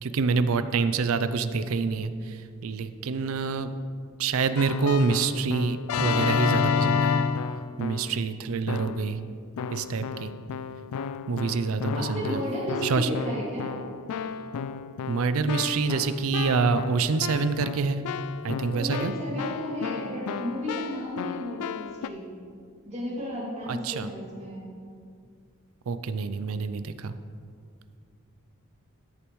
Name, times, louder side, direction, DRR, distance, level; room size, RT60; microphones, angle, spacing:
voice 1, 0.0-3.7 4.2-7.1 7.8-9.2 9.7-10.3 11.3-12.4 12.8-13.1 15.1-18.0 18.4-19.1 23.7-24.1 25.9-27.1, right 4 dB, 65° right, 12 dB, 0.4 m, -26 dB
Keyboard (musical), 4.6-8.2 8.7-9.2 9.6-22.1, left 6 dB, 85° left, 0.3 m, -31 dB
voice 2, 11.9-13.7 18.7-22.3 22.9-24.7, equal, 30° right, -6 dB, 2.5 m, -33 dB
13.5 x 6.8 x 3.1 m, 2.2 s
head